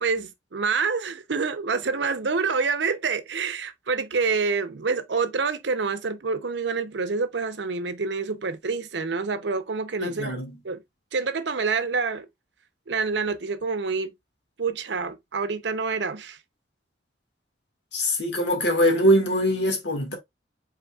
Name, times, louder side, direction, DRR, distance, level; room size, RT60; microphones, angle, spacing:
voice 1, 0.0-10.8 11.1-12.3 12.9-14.1 14.6-16.4, right 4 dB, 70° right, 0.7 m, -27 dB
voice 2, 10.0-10.6 17.9-20.1, equal, 75° left, 1.8 m, -22 dB
5.3 x 4.0 x 2.3 m
head